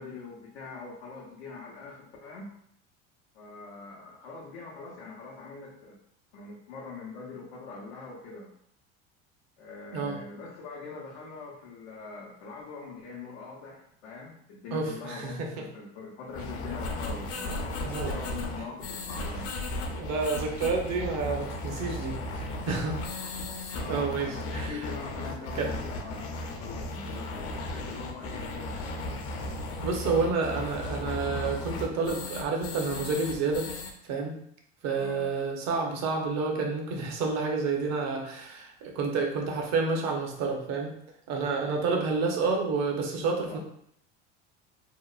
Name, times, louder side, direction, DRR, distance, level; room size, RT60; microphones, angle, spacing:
voice 1, 0.0-2.5 3.3-6.0 6.3-8.5 9.6-17.6 18.0-19.5 23.7-29.2 34.9-35.3 43.4-43.6, left 4 dB, 85° left, -4 dB, 0.6 m, -43 dB
voice 2, 14.7-15.5 17.8-18.2 20.0-23.0 23.8-24.9 25.5-25.7 29.8-33.7 34.1-34.4 34.8-40.9 41.3-43.6, right 4 dB, 55° right, 1 dB, 0.7 m, -29 dB
sound 1, 16.3-33.9, left 2 dB, 45° left, 0.5 m, -35 dB
2.8 x 2.0 x 2.3 m, 0.69 s
supercardioid pair, 90°, 32 cm